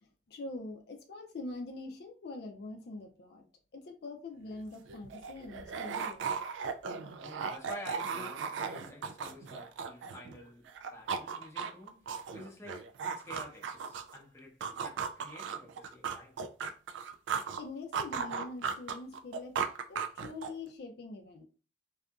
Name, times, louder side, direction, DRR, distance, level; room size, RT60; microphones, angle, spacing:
voice 1, 0.3-3.4 3.7-6.4 17.6-21.4, left 2 dB, 60° left, 0.4 m, -44 dB
sound 1, 4.5-4.6 4.9-10.4 10.7-14.2 14.6-17.6 17.9-20.7, right 6 dB, 80° right, 0.3 m, -37 dB
voice 2, 6.9-16.4, left 1 dB, 15° left, 0.6 m, -50 dB
2.7 x 2.4 x 2.3 m
head